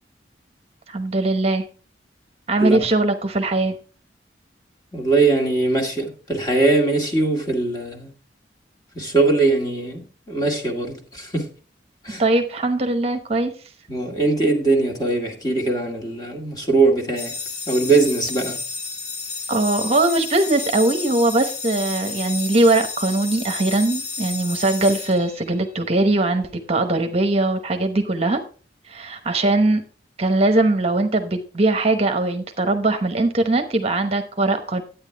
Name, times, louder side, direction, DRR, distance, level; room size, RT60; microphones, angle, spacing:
voice 1, 0.9-1.6 2.5-3.8 12.2-13.5 19.5-28.4 28.9-29.8 30.2-34.8, right 2 dB, 35° right, 0.9 m, -20 dB
voice 2, 4.9-8.1 8.9-11.5 12.0-12.2 13.9-17.4 17.7-18.6, right 3 dB, 20° left, 2.0 m, -21 dB
sound 1, 17.2-25.8, left 4 dB, 60° left, 1.5 m, -32 dB
10.5 x 9.1 x 3.4 m
head